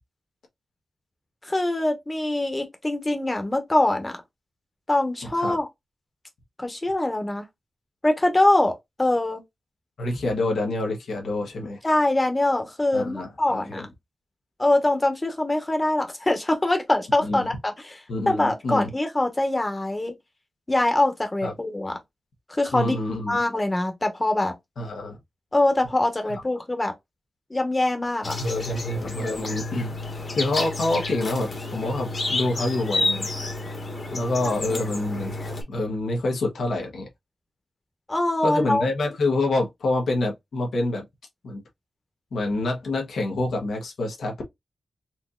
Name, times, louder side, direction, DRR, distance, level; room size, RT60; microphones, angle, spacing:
voice 1, 1.4-4.2 4.9-5.6 6.6-7.4 8.0-9.4 11.8-13.9 14.6-18.0 18.3-20.1 20.7-22.0 22.5-22.9 23.3-24.5 25.5-26.9 27.5-28.4 34.4-34.8 38.1-38.8, left 2 dB, 20° left, 1.1 m, -23 dB
voice 2, 10.0-11.8 12.9-13.9 17.2-17.5 18.1-18.9 21.4-21.5 22.7-23.4 24.8-25.2 28.4-30.0 30.3-33.3 34.1-35.4 35.7-37.1 38.4-41.0 41.4-41.6 42.3-44.4, left 2 dB, 85° left, 1.1 m, -27 dB
sound 1, 28.2-35.6, left 2 dB, 50° left, 1.4 m, -30 dB
4.4 x 2.7 x 2.4 m
wide cardioid pair, 85°, 0 cm